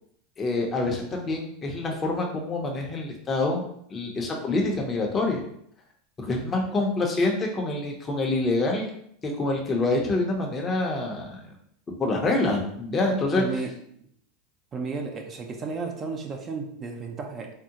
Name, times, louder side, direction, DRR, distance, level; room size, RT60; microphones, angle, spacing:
voice 1, 0.4-3.6 3.9-5.4 6.2-8.9 9.2-11.4 12.0-13.4, left 2 dB, 20° left, 1 dB, 0.6 m, -26 dB
voice 2, 13.4-13.7 14.0-14.1 14.7-17.5, right 4 dB, 25° right, 3 dB, 0.5 m, -33 dB
3.6 x 2.0 x 2.8 m, 0.69 s
supercardioid pair, 130°, 0 cm